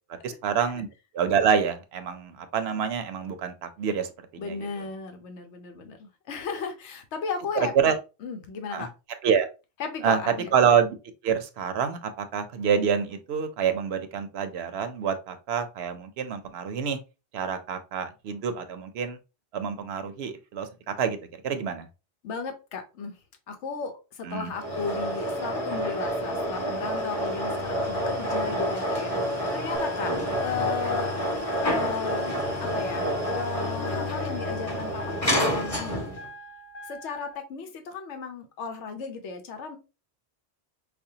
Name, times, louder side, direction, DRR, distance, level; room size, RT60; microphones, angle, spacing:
voice 1, 0.2-0.9 1.1-4.1 4.3-4.6 7.8-8.0 8.7-8.9 9.2-9.5 10.0-10.2 10.5-10.9 11.2-17.0 17.3-19.2 19.5-21.2 21.4-21.9 24.3-24.5, right 7 dB, 70° right, 9 dB, 0.8 m, -27 dB
voice 2, 4.4-8.9 9.8-10.5 22.2-23.1 23.5-30.1 30.4-31.2 31.6-32.2 32.6-36.2 36.8-39.8, left 5 dB, 85° left, 6 dB, 1.0 m, -35 dB
sound 1, 24.5-36.3, equal, 30° left, 1.8 m, -28 dB
sound 2, 29.7-37.3, right 1 dB, 70° left, 1.7 m, -44 dB
5.1 x 2.2 x 2.7 m, 0.30 s
omnidirectional pair, 1.1 m